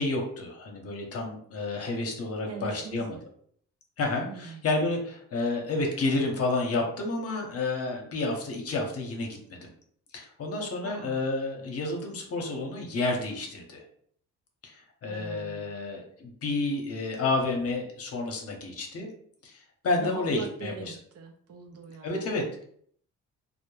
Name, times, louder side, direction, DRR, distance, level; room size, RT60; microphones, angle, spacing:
voice 1, 0.0-3.2 4.0-9.6 10.1-13.8 14.6-19.1 19.4-20.9 22.0-22.6, left 2 dB, 50° left, 2 dB, 0.7 m, -30 dB
voice 2, 2.5-3.2 4.3-4.6 10.8-11.2 15.0-15.7 20.0-22.4, right 6 dB, 55° right, 4 dB, 0.5 m, -43 dB
2.1 x 2.0 x 3.0 m, 0.62 s
cardioid pair, 90°, 30 cm